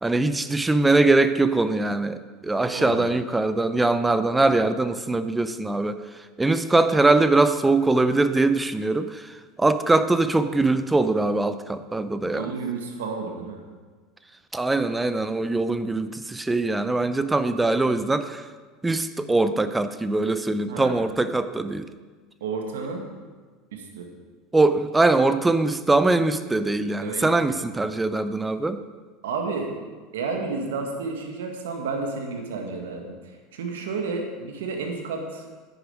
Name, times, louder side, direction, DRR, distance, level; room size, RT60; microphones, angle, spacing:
voice 1, 0.0-6.0 6.4-12.5 14.5-18.4 18.8-21.9 24.5-28.8, right 2 dB, 10° right, 12 dB, 0.6 m, -22 dB
voice 2, 2.7-3.1 12.3-13.6 20.7-21.0 22.4-23.1 23.7-24.1 27.0-27.6 29.2-29.7 30.1-35.4, right 4 dB, 85° right, 3 dB, 1.9 m, -31 dB
10.0 x 10.0 x 5.0 m, 1.4 s
hypercardioid pair, 95°, 0 cm